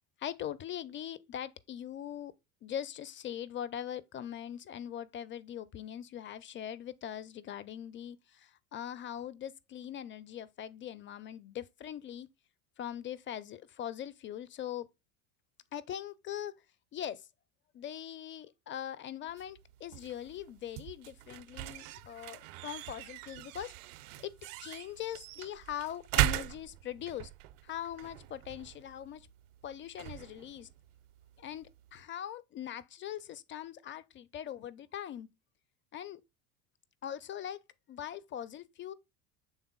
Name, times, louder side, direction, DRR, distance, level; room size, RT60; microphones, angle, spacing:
voice 1, 0.2-2.3 2.6-12.3 12.8-14.9 15.7-16.5 16.9-17.3 17.7-23.7 24.2-24.3 24.6-27.3 27.6-29.3 29.6-30.7 31.4-35.3 35.9-36.2 37.0-37.6 37.9-38.9, left 10 dB, 25° left, 0.5 m, -41 dB
sound 1, 19.3-32.0, right 16 dB, 60° right, 0.6 m, -39 dB
7.2 x 3.5 x 3.8 m
hypercardioid pair, 70°, 45 cm